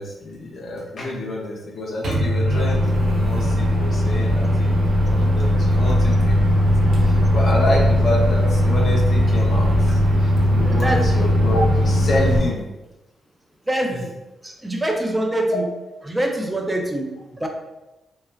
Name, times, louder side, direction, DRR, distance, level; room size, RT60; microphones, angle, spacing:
voice 1, 0.0-12.6 15.5-15.6, left 1 dB, 65° left, -3 dB, 0.6 m, -28 dB
Microwave oven, 2.0-12.4, equal, 70° right, 0.7 m, -18 dB
voice 2, 10.6-11.0 13.7-14.1 14.4-15.7 16.1-17.5, right 1 dB, 15° right, 2 dB, 0.5 m, -24 dB
3.0 x 2.2 x 2.4 m, 1.0 s
supercardioid pair, 60°, 0 cm